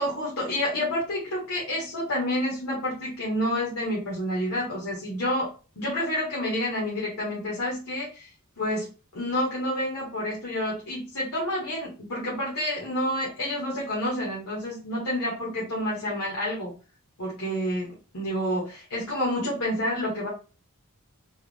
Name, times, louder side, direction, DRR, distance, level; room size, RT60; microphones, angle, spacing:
voice 1, 0.0-5.5 5.8-8.3 8.6-8.9 9.1-16.7 17.2-20.3, left 1 dB, 80° left, -5 dB, 1.2 m, -29 dB
3.4 x 2.1 x 3.4 m, 0.34 s
head